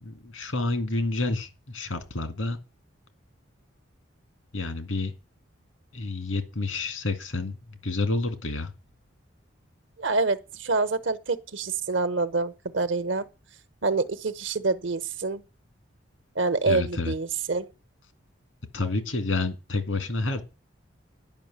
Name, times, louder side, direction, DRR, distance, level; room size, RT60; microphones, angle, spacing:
voice 1, 0.0-2.6 4.5-5.1 5.9-8.7 16.7-17.1 18.7-20.4, left 2 dB, 85° left, 2.1 m, -29 dB
voice 2, 10.0-13.2 13.8-15.4 16.4-17.7, right 3 dB, 70° right, 1.0 m, -26 dB
10.5 x 5.8 x 8.6 m
head